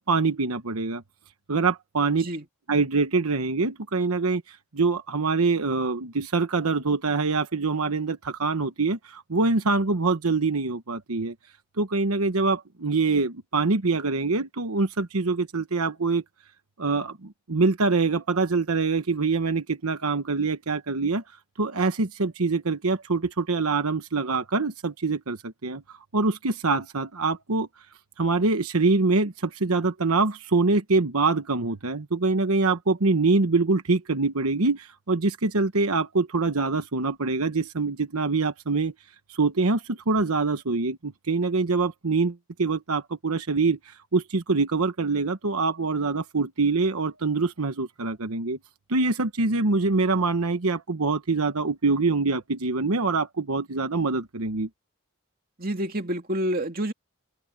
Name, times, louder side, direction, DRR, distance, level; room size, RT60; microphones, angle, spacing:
voice 1, 0.1-1.0 1.5-2.3 2.7-11.3 11.8-16.2 16.8-21.2 21.6-27.7 28.2-38.9 39.3-48.6 48.9-54.7, right 3 dB, 90° right, 1.2 m, -24 dB
voice 2, 55.6-56.9, equal, 40° right, 2.5 m, -28 dB
open air
head